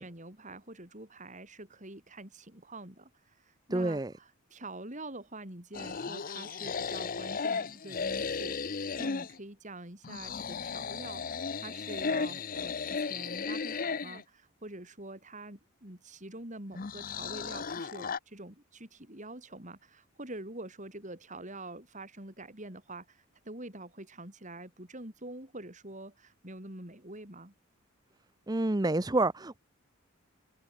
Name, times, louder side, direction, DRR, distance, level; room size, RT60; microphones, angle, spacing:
voice 1, 0.0-3.1 3.4-27.5, right 2 dB, 35° right, 4.9 m, -46 dB
voice 2, 3.7-4.1 28.5-29.6, right 2 dB, 20° right, 0.7 m, -28 dB
sound 1, 5.7-9.4 10.0-14.2 16.7-18.2, left 5 dB, 40° left, 0.7 m, -35 dB
open air
head